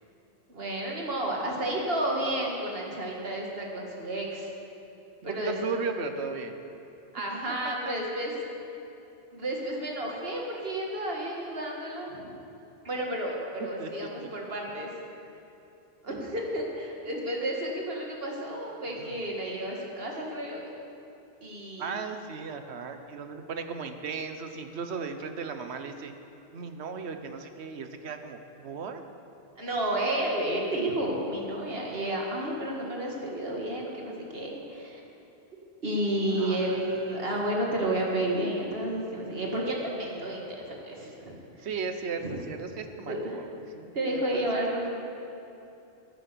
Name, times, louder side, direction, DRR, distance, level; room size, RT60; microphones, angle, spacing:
voice 1, 0.5-4.5 5.2-5.5 7.1-8.3 9.3-12.3 12.8-14.9 16.0-20.6 21.4-22.0 29.6-35.0 35.8-41.7 42.2-42.4 43.1-43.4 43.9-44.9, right 1 dB, 65° right, -1 dB, 2.1 m, -31 dB
voice 2, 5.2-6.6 7.6-7.9 13.8-13.9 14.2-14.3 16.1-16.3 19.0-19.1 21.8-26.1 26.5-29.0 36.4-37.0 41.6-44.2, right 5 dB, 85° right, 7 dB, 1.1 m, -36 dB
10.5 x 10.5 x 6.8 m, 2.8 s
omnidirectional pair, 1.1 m